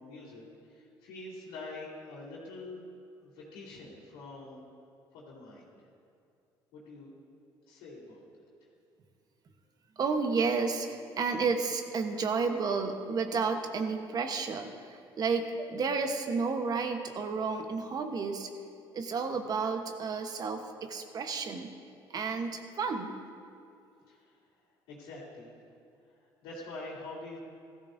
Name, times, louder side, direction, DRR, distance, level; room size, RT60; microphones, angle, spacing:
voice 1, 0.0-2.8 3.2-4.6 5.1-5.8 6.7-7.1 7.7-8.5 24.1-24.4 24.9-25.5 26.1-26.2 26.4-27.4, left 2 dB, 85° left, -11 dB, 3.0 m, -45 dB
voice 2, 10.0-18.5 18.9-21.7 22.1-23.2, right 4 dB, 45° right, 6 dB, 1.2 m, -31 dB
15.5 x 14.0 x 2.7 m, 2.5 s
supercardioid pair, 85°, 9 cm